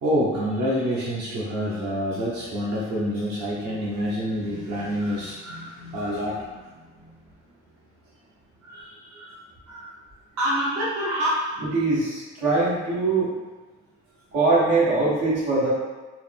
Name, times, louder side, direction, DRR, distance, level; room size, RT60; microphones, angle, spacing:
voice 1, 0.0-6.7 7.0-7.1 8.6-9.4 9.6-9.9 10.4-11.4, equal, 60° right, -7 dB, 0.9 m, -27 dB
voice 2, 11.6-13.3 14.3-15.7, right 3 dB, 85° right, -7 dB, 1.4 m, -22 dB
4.6 x 2.1 x 3.5 m, 1.2 s
cardioid pair, 90°, 30 cm